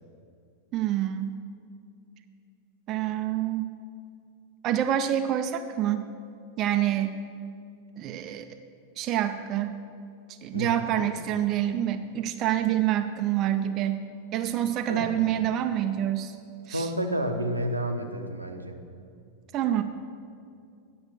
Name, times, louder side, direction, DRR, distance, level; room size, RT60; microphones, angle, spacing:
voice 1, 0.7-1.4 2.9-3.7 4.6-6.1 6.6-7.2 8.0-8.5 9.0-9.7 10.4-14.0 14.3-16.4 16.7-16.9 19.5-19.8, right 11 dB, 35° right, 7 dB, 0.4 m, -27 dB
voice 2, 10.5-11.1 14.9-15.2 16.7-18.8, equal, 85° right, 4 dB, 0.7 m, -30 dB
9.8 x 6.2 x 6.4 m, 2.4 s
figure-of-eight pair, 90°, 0 cm